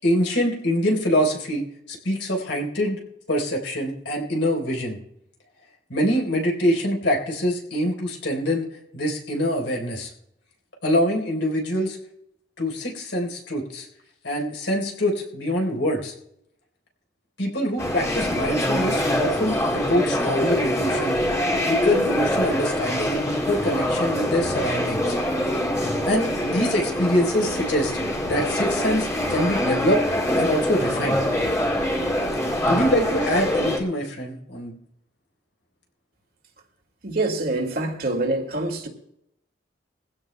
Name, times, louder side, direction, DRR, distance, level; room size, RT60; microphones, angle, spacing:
voice 1, 0.0-3.0 3.3-5.0 5.9-8.7 8.9-10.1 10.8-12.0 12.6-13.9 14.2-16.1 17.4-21.2 21.6-25.2 26.1-28.0 28.3-30.0 30.4-31.2 32.7-34.8, equal, 85° left, 4.0 m, -24 dB
sound 1, 17.8-33.8, left 1 dB, 20° left, 2.2 m, -24 dB
voice 2, 37.0-38.9, right 2 dB, 55° right, 2.2 m, -25 dB
22.0 x 16.0 x 2.3 m
head